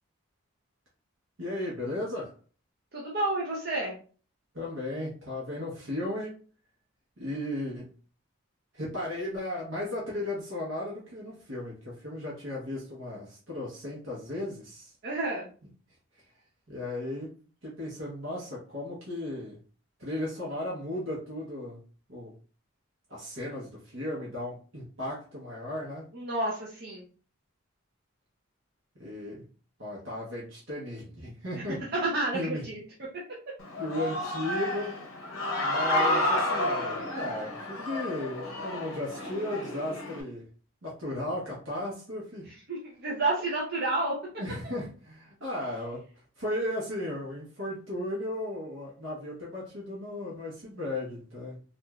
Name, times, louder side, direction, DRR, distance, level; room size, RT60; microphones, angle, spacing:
voice 1, 1.4-2.3 4.5-6.4 7.2-7.9 8.7-14.9 16.1-16.3 16.7-17.3 17.6-19.6 20.0-21.8 22.1-22.3 23.1-26.0 28.9-29.4 29.8-31.8 32.3-32.6 33.8-35.0 35.6-40.5 40.8-42.5 44.4-46.0 46.4-51.6, left 1 dB, 65° right, -6 dB, 0.9 m, -35 dB
voice 2, 2.9-4.0 15.0-15.5 26.1-27.0 31.9-32.8 42.7-44.2, right 2 dB, 45° right, -4 dB, 0.6 m, -30 dB
Human voice / Cheering, 33.6-40.2, left 1 dB, 70° left, 0.6 m, -30 dB
3.0 x 2.4 x 2.3 m, 0.40 s
head